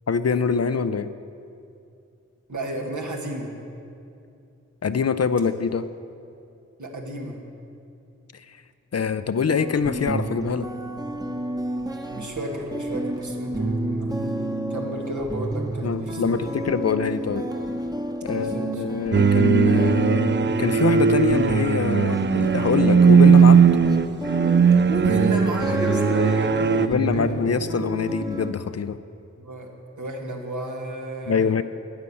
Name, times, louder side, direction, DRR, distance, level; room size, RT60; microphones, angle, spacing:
voice 1, 0.1-1.1 4.8-5.9 8.3-8.6 8.9-10.7 15.8-17.5 18.2-23.7 26.8-29.0 31.3-31.6, left 6 dB, 55° left, 12 dB, 0.5 m, -24 dB
voice 2, 2.5-3.6 6.8-7.4 12.1-16.3 18.3-18.8 24.9-27.4 29.4-29.7 30.0-31.6, right 1 dB, 75° right, 0 dB, 2.0 m, -31 dB
sound 1, 9.5-28.5, right 1 dB, 15° right, 1.0 m, -30 dB
sound 2, 19.1-26.9, right 6 dB, 40° right, 0.4 m, -18 dB
9.7 x 9.7 x 8.5 m, 2.6 s
wide cardioid pair, 55°, 30 cm